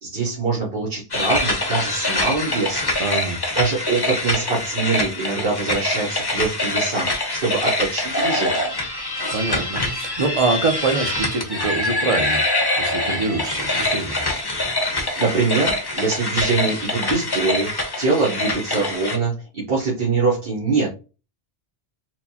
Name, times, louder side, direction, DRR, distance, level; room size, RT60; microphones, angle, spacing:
voice 1, 0.0-2.9 3.5-8.7 14.9-20.9, right 4 dB, 60° right, 1.1 m, -24 dB
sound 1, 1.1-19.2, left 2 dB, 25° left, 0.6 m, -24 dB
voice 2, 3.0-3.4 9.3-12.4 12.7-14.1, right 3 dB, 35° right, 0.7 m, -24 dB
4.5 x 2.1 x 2.8 m
omnidirectional pair, 1.1 m